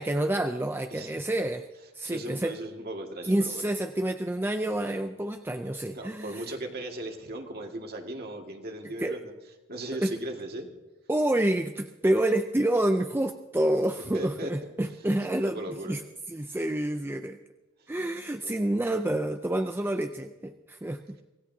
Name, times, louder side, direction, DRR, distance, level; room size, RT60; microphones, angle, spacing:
voice 1, 0.0-1.7 1.9-2.6 3.2-6.4 9.0-9.2 10.0-10.1 11.1-15.6 15.9-16.0 16.3-17.4 17.9-21.2, right 1 dB, 10° right, 6 dB, 0.4 m, -28 dB
voice 2, 2.0-3.7 5.9-9.3 9.7-10.7 14.1-14.5 15.5-15.9 18.4-18.6, right 1 dB, 50° right, 2 dB, 2.0 m, -37 dB
25.0 x 16.5 x 2.8 m, 1.1 s
head